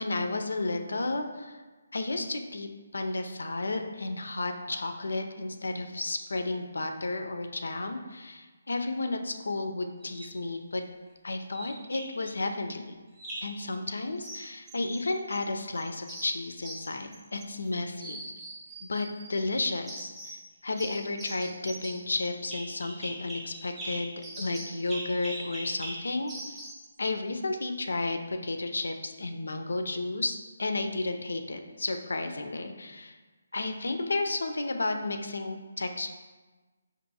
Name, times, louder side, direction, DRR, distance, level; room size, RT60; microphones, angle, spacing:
voice 1, 0.0-1.6 1.9-10.8 11.2-12.9 13.4-18.2 18.8-26.6 27.0-33.2 33.5-36.1, left 2 dB, 80° left, 6 dB, 0.4 m, -32 dB
sound 1, 10.0-10.4 11.5-12.3 13.2-13.6 14.2-15.4 15.8-17.7 18.0-19.3 19.9-20.5 20.8-26.9, right 1 dB, 10° right, 0.5 m, -42 dB
4.5 x 2.5 x 2.7 m, 1.3 s
hypercardioid pair, 160°, 0 cm